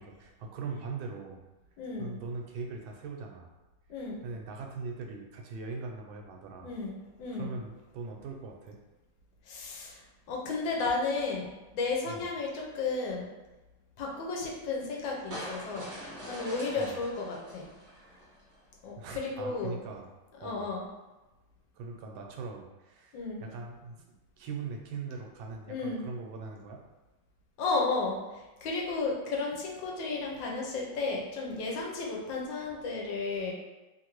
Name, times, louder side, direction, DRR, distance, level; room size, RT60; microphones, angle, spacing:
voice 1, 0.0-1.4 2.0-3.5 4.0-6.7 7.3-8.8 12.1-12.2 16.8-17.0 18.0-18.2 19.0-20.1 20.4-20.7 21.7-26.8, right 4 dB, 80° right, 2 dB, 1.3 m, -41 dB
voice 2, 1.8-2.2 3.9-4.2 6.6-7.5 9.5-10.0 10.3-11.5 11.7-13.3 14.0-15.9 16.3-17.7 18.8-19.7 20.4-20.8 23.1-23.4 25.7-26.0 27.6-28.2 28.6-33.5, left 3 dB, 75° left, -2 dB, 1.3 m, -33 dB
sound 1, 15.3-18.6, equal, 55° right, 1.1 m, -43 dB
3.2 x 2.5 x 2.9 m, 1.1 s
omnidirectional pair, 2.2 m